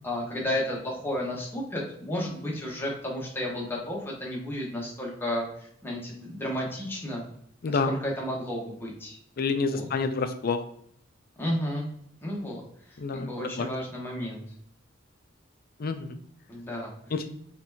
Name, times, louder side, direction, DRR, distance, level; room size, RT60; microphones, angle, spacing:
voice 1, 0.0-7.2 7.6-9.2 9.6-9.9 11.4-11.9 12.2-12.6 12.9-14.4 16.5-16.9, left 1 dB, 10° left, -3 dB, 1.2 m, -32 dB
voice 2, 9.4-10.6 13.0-13.3 13.6-13.7 15.8-16.1 17.1-17.2, left 4 dB, 50° left, 8 dB, 0.5 m, -27 dB
4.3 x 3.3 x 2.8 m, 0.68 s
head